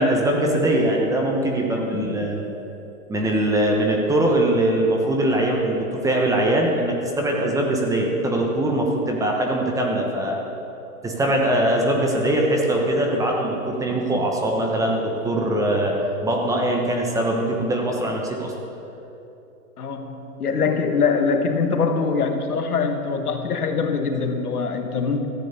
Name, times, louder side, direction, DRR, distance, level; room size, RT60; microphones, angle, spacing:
voice 1, 0.0-2.4 3.1-10.4 11.0-15.9 16.2-18.5, right 1 dB, 5° right, 0 dB, 1.1 m, -22 dB
voice 2, 1.9-2.3 19.8-25.3, left 5 dB, 80° left, 6 dB, 1.6 m, -23 dB
14.5 x 8.3 x 7.0 m, 2.9 s
hypercardioid pair, 140°, 44 cm